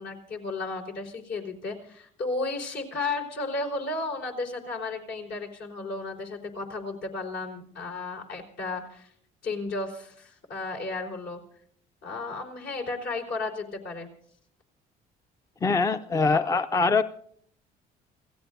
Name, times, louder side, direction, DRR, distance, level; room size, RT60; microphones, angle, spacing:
voice 1, 0.0-9.1 9.4-11.4 12.0-14.1 16.3-16.4, left 3 dB, 70° left, 1 dB, 4.7 m, -33 dB
voice 2, 15.6-17.0, left 4 dB, 20° left, 10 dB, 0.5 m, -23 dB
29.0 x 17.5 x 2.6 m, 0.64 s
cardioid pair, 110°, 17 cm